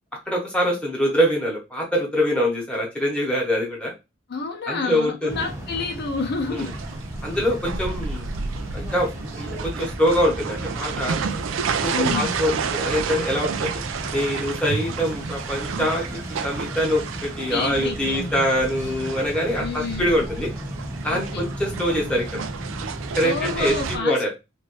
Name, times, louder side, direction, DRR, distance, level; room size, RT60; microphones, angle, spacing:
voice 1, 0.3-3.9 4.7-5.4 6.5-6.7 7.2-8.3 8.7-11.2 11.7-13.7 14.1-20.5 21.0-22.4 23.1-24.3, equal, 5° left, -3 dB, 1.1 m, -24 dB
voice 2, 4.3-6.7 11.9-12.4 17.5-18.5 19.6-20.1 21.1-21.5 23.2-24.2, left 4 dB, 55° left, 3 dB, 0.6 m, -29 dB
sound 1, 5.3-24.0, right 1 dB, 15° right, 0.8 m, -35 dB
sound 2, 6.6-24.0, right 6 dB, 75° right, 0.4 m, -31 dB
3.0 x 2.6 x 3.0 m, 0.25 s
head